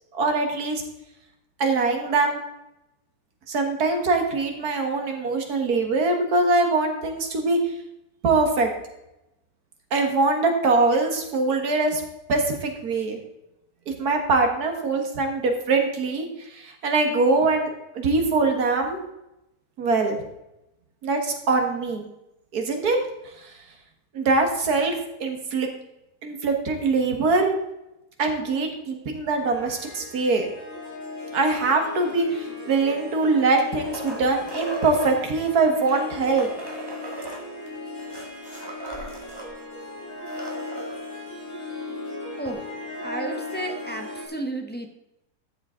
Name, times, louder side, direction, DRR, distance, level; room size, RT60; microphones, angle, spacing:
voice 1, 0.1-0.8 1.6-2.4 3.5-7.6 8.2-8.7 9.9-12.0 12.3-13.2 13.9-19.0 19.8-20.2 21.0-22.0 22.5-23.0 24.1-25.7 26.2-27.5 28.2-30.5 31.3-36.5, right 3 dB, 75° right, 4 dB, 2.0 m, -23 dB
Harp, 29.4-44.3, left 2 dB, 80° left, 4.0 m, -37 dB
sound 1, 33.2-35.1 35.8-39.5 39.8-39.9 40.2-41.0 42.5-42.6, right 1 dB, 15° right, 2.0 m, -37 dB
voice 2, 43.0-44.9, right 2 dB, 10° left, 2 dB, 0.8 m, -32 dB
12.5 x 7.4 x 3.7 m, 0.89 s
omnidirectional pair, 1.7 m